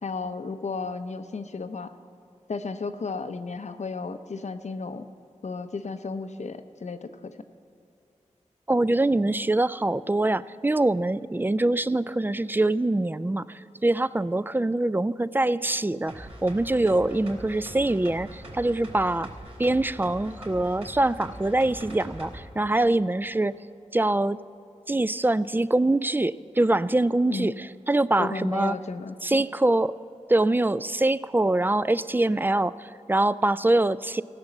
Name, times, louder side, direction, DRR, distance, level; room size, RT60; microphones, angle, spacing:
voice 1, 0.0-1.9 2.5-5.1 5.4-7.4 27.3-27.5 28.2-29.4, left 4 dB, 65° left, 9 dB, 0.7 m, -33 dB
voice 2, 8.7-19.3 19.6-23.6 23.9-24.4 24.9-28.8 29.2-30.0 30.3-34.2, right 2 dB, 15° right, 16 dB, 0.3 m, -24 dB
sound 1, 16.1-22.4 22.8-22.9, right 1 dB, 50° right, 2.6 m, -42 dB
15.0 x 6.1 x 7.7 m, 2.6 s
cardioid pair, 40°, 13 cm